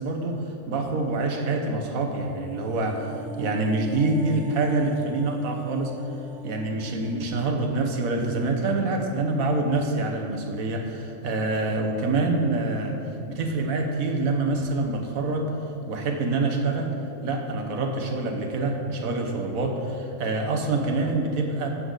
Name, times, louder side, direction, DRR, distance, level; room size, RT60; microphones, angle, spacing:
voice 1, 0.0-5.9 6.4-13.0 13.3-15.5 15.9-16.9 17.2-21.7, right 2 dB, 90° right, 3 dB, 1.5 m, -26 dB
sound 1, 2.2-10.6 10.9-11.1, right 3 dB, 65° right, 1.0 m, -40 dB
14.0 x 7.7 x 4.0 m, 2.8 s
omnidirectional pair, 1.4 m